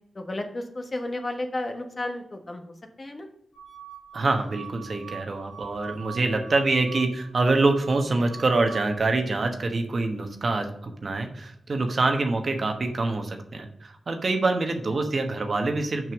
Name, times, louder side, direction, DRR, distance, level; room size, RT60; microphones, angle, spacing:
voice 1, 0.1-3.3, left 1 dB, 35° left, 5 dB, 1.2 m, -33 dB
sound 1, 3.5-8.9, right 9 dB, 5° left, 2.8 m, -43 dB
voice 2, 4.1-16.1, right 3 dB, 50° right, 5 dB, 1.1 m, -25 dB
6.1 x 5.4 x 6.2 m, 0.74 s
cardioid pair, 70°, 0 cm